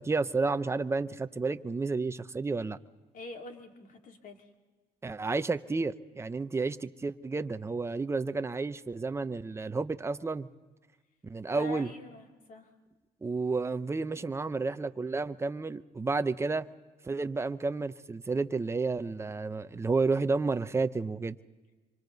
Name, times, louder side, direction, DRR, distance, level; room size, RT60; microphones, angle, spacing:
voice 1, 0.0-2.8 5.0-10.5 11.2-11.9 13.2-16.7 17.0-21.4, right 3 dB, 15° right, 12 dB, 0.7 m, -31 dB
voice 2, 3.1-4.4 11.5-12.6, left 4 dB, 55° left, 3 dB, 3.1 m, -45 dB
26.5 x 25.0 x 4.0 m, 1.3 s
cardioid pair, 110°, 17 cm